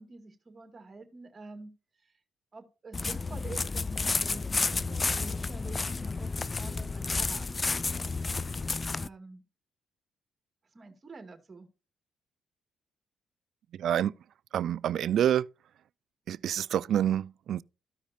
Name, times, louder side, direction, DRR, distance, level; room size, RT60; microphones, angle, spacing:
voice 1, 0.0-1.7 2.0-2.2 2.5-7.5 9.0-9.4 10.7-11.7, right 3 dB, 35° right, 2.1 m, -48 dB
sound 1, 2.9-9.1, left 3 dB, 30° left, 0.3 m, -31 dB
voice 2, 13.8-14.1 14.5-15.5 16.3-17.6, right 10 dB, 70° right, 0.3 m, -27 dB
14.0 x 5.0 x 2.6 m
supercardioid pair, 70°, 0 cm